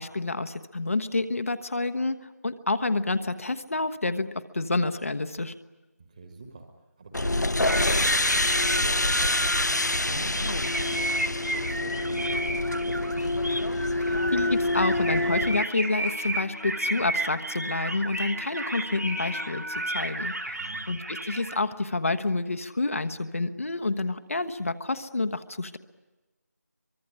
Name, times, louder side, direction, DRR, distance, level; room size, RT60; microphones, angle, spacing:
voice 1, 0.0-2.2 2.4-5.6 14.0-25.8, left 3 dB, 50° left, 9 dB, 1.2 m, -29 dB
voice 2, 6.0-6.7 7.0-10.4 10.8-11.1 11.5-13.4 20.5-20.8, right 3 dB, 25° right, 4 dB, 1.8 m, -44 dB
sound 1, 7.1-15.6, left 2 dB, 85° left, 0.8 m, -26 dB
sound 2, 7.6-21.6, right 1 dB, 75° right, 2.2 m, -33 dB
Wind instrument woodwind instrument, 15.5-19.9, left 12 dB, 10° left, 1.3 m, -49 dB
24.0 x 22.5 x 10.0 m, 1.2 s
figure-of-eight pair, 165°, 9 cm